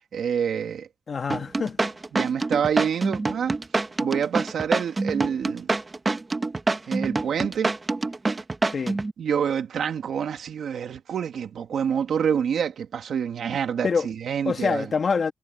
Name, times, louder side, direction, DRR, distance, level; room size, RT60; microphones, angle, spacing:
voice 1, 0.1-0.9 2.1-3.5 4.0-5.7 6.9-7.7 9.2-14.9, right 7 dB, 80° right, 2.4 m, -27 dB
voice 2, 1.1-1.8 8.7-9.0 13.8-14.1 14.4-15.3, left 5 dB, 55° left, 1.5 m, -25 dB
sound 1, 1.3-9.1, right 3 dB, 30° right, 1.0 m, -26 dB
cardioid pair, 90°, 0 cm